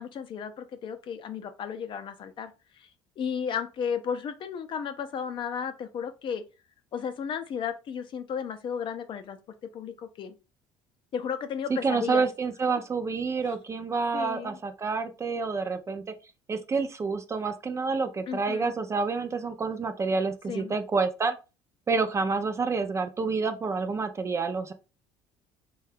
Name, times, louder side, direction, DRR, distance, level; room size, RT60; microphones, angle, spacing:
voice 1, 0.0-2.5 2.8-2.9 3.2-6.4 6.9-9.4 9.7-10.3 11.1-12.2 14.1-14.6 18.3-18.7 20.5-20.7, left 7 dB, 45° left, 0.5 m, -34 dB
voice 2, 11.7-16.0 16.5-21.4 21.9-24.7, right 4 dB, 25° right, 0.4 m, -28 dB
2.7 x 2.2 x 3.4 m
supercardioid pair, 95°, 11 cm